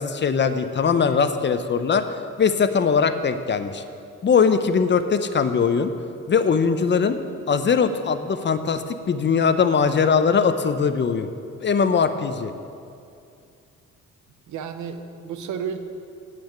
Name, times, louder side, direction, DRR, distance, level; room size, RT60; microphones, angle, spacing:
voice 1, 0.0-2.1 2.4-3.8 4.2-5.9 6.3-7.2 7.5-11.3 11.6-12.5, left 6 dB, 40° left, 10 dB, 0.6 m, -21 dB
voice 2, 14.5-15.8, right 7 dB, 75° right, 8 dB, 0.9 m, -32 dB
8.5 x 6.4 x 8.2 m, 2.4 s
cardioid pair, 90°, 30 cm